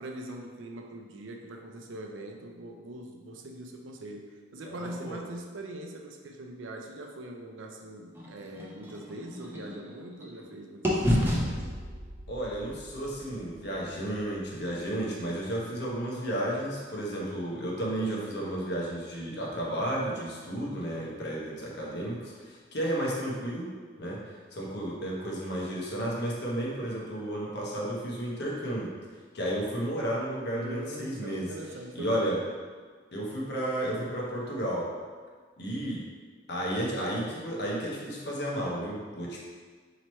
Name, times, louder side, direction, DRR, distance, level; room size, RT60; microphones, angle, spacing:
voice 1, 0.0-11.7 30.5-32.4, right 1 dB, 75° right, 3 dB, 0.5 m, -42 dB
voice 2, 4.6-5.2 12.3-24.2 24.5-28.9 29.3-31.5 31.9-32.4 33.1-34.9 35.6-36.0 36.5-39.4, right 1 dB, 60° left, -4 dB, 0.8 m, -32 dB
sound 1, 8.1-10.5 10.8-14.8, equal, 10° right, 0.6 m, -32 dB
3.0 x 2.9 x 4.2 m, 1.6 s
head